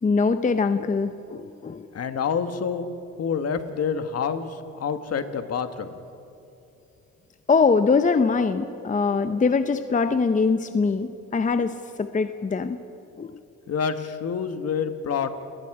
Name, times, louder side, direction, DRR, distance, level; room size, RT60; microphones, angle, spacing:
voice 1, 0.0-1.9 7.5-12.8 13.2-13.4, left 4 dB, 25° left, 10 dB, 0.7 m, -23 dB
voice 2, 1.9-2.9 3.2-5.9 13.7-15.3, left 6 dB, 55° left, 9 dB, 1.5 m, -27 dB
29.0 x 18.5 x 4.9 m, 2.7 s
cardioid pair, 90°, 30 cm